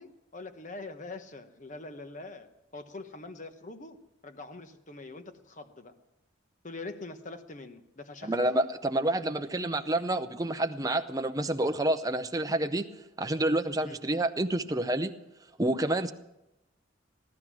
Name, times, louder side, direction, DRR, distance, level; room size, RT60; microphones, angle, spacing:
voice 1, 0.0-5.9 6.6-8.4 13.8-14.0, left 2 dB, 40° left, 8 dB, 1.0 m, -44 dB
voice 2, 8.2-12.9 13.2-15.1 15.6-16.1, right 1 dB, 20° right, 8 dB, 0.7 m, -28 dB
17.0 x 12.0 x 6.1 m, 0.94 s
head